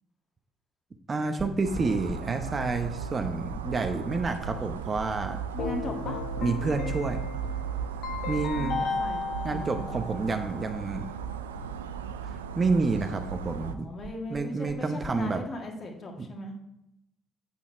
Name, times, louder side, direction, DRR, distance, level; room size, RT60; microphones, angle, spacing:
voice 1, 1.1-5.4 6.4-7.2 8.3-8.8 9.4-11.1 12.2-13.9 14.3-15.4 16.2-16.3, right 3 dB, 35° right, 6 dB, 0.8 m, -29 dB
sound 1, 1.4-9.7 9.9-11.6 11.9-15.2, equal, 10° left, 2.1 m, -44 dB
sound 2, 1.6-13.7, right 7 dB, 90° right, 0.4 m, -36 dB
voice 2, 5.5-6.2 8.5-9.2 9.5-9.6 9.9-10.0 10.3-10.5 13.6-16.6, left 1 dB, 50° left, 2 dB, 1.6 m, -38 dB
Keyboard (musical), 5.6-10.6, left 4 dB, 65° left, 1.2 m, -35 dB
8.5 x 5.7 x 4.4 m, 0.84 s
hypercardioid pair, 45°, 0 cm